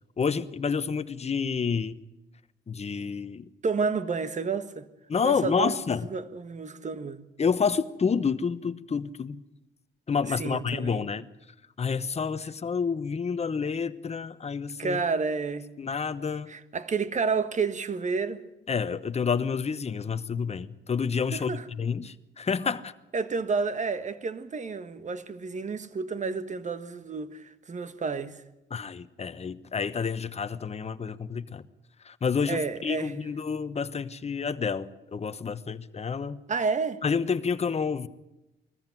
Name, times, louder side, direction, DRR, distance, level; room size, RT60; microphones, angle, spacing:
voice 1, 0.2-2.0 2.7-3.5 5.1-6.1 7.4-9.4 10.1-11.3 11.8-15.0 15.8-16.5 18.7-22.9 28.7-31.6 32.0-36.4 37.0-38.1, left 5 dB, 30° left, 1.1 m, -29 dB
voice 2, 3.6-4.9 5.2-5.7 6.1-7.3 10.2-11.0 14.8-15.7 16.5-18.4 21.3-21.7 23.1-28.4 32.5-33.1 36.5-37.0, right 4 dB, 35° right, 1.6 m, -30 dB
21.0 x 14.0 x 9.2 m
cardioid pair, 90°, 20 cm